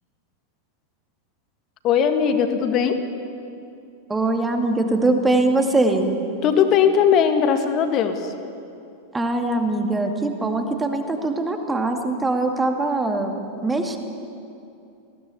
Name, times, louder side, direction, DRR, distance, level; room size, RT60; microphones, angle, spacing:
voice 1, 1.8-3.0 6.4-8.3, left 7 dB, 35° left, 6 dB, 2.0 m, -19 dB
voice 2, 4.1-6.1 9.1-13.4 13.6-14.0, right 2 dB, 10° right, 4 dB, 2.3 m, -22 dB
20.0 x 17.0 x 8.5 m, 2.6 s
figure-of-eight pair, 90°, 0 cm